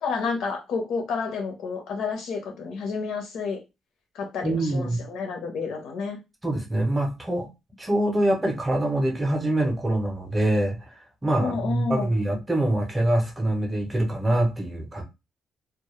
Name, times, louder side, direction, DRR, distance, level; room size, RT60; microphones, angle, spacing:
voice 1, 0.0-3.6 4.1-6.2 11.4-12.2, left 5 dB, 75° left, 0.7 m, -30 dB
voice 2, 4.4-5.0 6.4-7.5 7.8-10.9 11.2-15.0, right 1 dB, 15° right, 0.6 m, -24 dB
2.2 x 2.0 x 2.9 m
cardioid pair, 170°, 0 cm